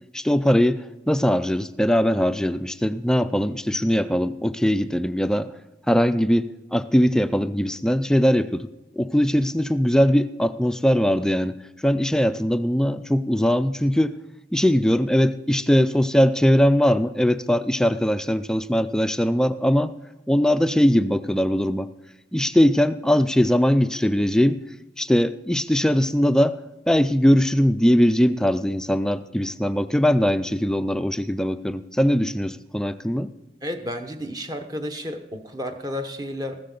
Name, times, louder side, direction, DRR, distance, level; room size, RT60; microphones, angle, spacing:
voice 1, 0.1-5.5 5.9-8.7 9.0-14.1 14.5-19.9 20.3-21.9 22.3-24.6 25.0-26.6 26.9-33.3, equal, 5° left, 12 dB, 0.3 m, -21 dB
voice 2, 33.6-36.6, equal, 20° right, 6 dB, 0.9 m, -32 dB
15.0 x 13.5 x 3.9 m, 0.96 s
head